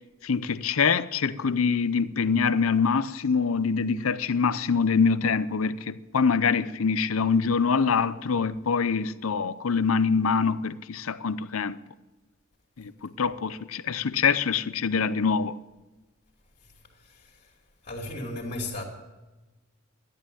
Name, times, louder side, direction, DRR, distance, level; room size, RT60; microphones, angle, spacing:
voice 1, 0.2-11.8 12.8-15.6, left 5 dB, 85° left, 0.6 m, -25 dB
voice 2, 16.6-17.5 17.8-18.8, left 1 dB, 40° left, 2.7 m, -36 dB
13.0 x 11.0 x 8.5 m
head